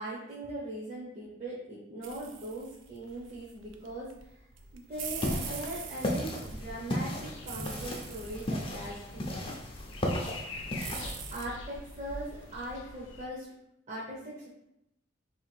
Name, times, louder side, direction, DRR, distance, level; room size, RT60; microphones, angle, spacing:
voice 1, 0.0-4.5 4.7-9.8 11.3-13.5 13.9-14.5, right 1 dB, 40° right, -7 dB, 0.9 m, -40 dB
sound 1, 2.0-12.7, right 5 dB, 75° right, 0.4 m, -45 dB
sound 2, 4.9-11.3, left 1 dB, 30° left, 0.6 m, -35 dB
sound 3, 7.0-13.3, left 3 dB, 80° left, 0.6 m, -46 dB
3.2 x 2.9 x 4.4 m, 0.84 s
head